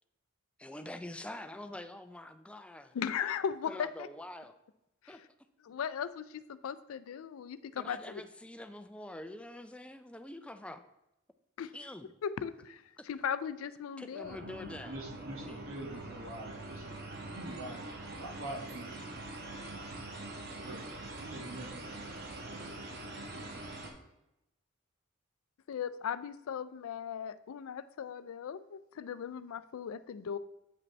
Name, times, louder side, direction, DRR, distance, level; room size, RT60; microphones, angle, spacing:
voice 1, 0.6-2.9 3.7-4.6 5.1-5.2 7.8-10.8 11.7-12.1 13.0-13.1 14.0-14.9 15.4-15.6, left 1 dB, 5° left, 9 dB, 0.4 m, -45 dB
voice 2, 2.9-4.1 5.0-5.3 5.6-8.1 11.6-11.7 12.2-14.7 25.7-30.4, left 7 dB, 80° left, 15 dB, 0.4 m, -38 dB
sound 1, 14.2-23.9, right 2 dB, 55° right, 1.1 m, -44 dB
voice 3, 14.8-19.0 20.5-20.9 21.2-22.0, right 1 dB, 85° right, 1 dB, 1.3 m, -45 dB
8.4 x 5.1 x 3.2 m, 0.90 s
head